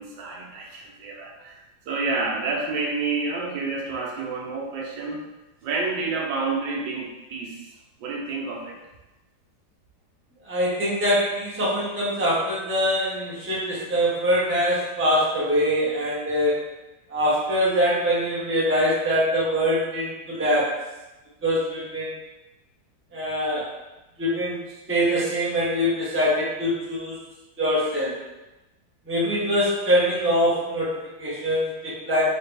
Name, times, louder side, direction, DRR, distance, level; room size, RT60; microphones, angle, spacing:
voice 1, 0.0-5.2 5.6-7.7 8.0-8.8, right 3 dB, 85° right, 0 dB, 1.4 m, -29 dB
voice 2, 10.4-16.6 17.1-20.7 21.4-22.1 23.1-23.7 24.2-24.6 24.9-27.2 27.6-28.2 29.1-32.2, equal, 10° right, -7 dB, 0.6 m, -23 dB
3.3 x 3.2 x 3.3 m, 1.0 s
omnidirectional pair, 1.9 m